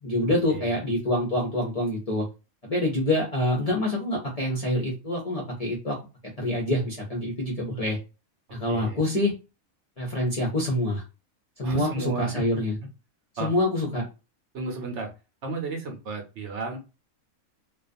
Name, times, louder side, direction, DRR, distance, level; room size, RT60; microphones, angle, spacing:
voice 1, 0.0-2.2 2.6-6.0 6.4-8.0 8.5-9.3 10.0-11.0 11.6-12.8 13.4-14.0, left 1 dB, 40° left, -3 dB, 0.5 m, -26 dB
voice 2, 8.7-9.0 11.6-12.5 13.4-13.5 14.5-15.1 15.4-16.8, right 3 dB, 60° right, 3 dB, 0.9 m, -33 dB
2.3 x 2.3 x 2.5 m, 0.28 s
omnidirectional pair, 1.5 m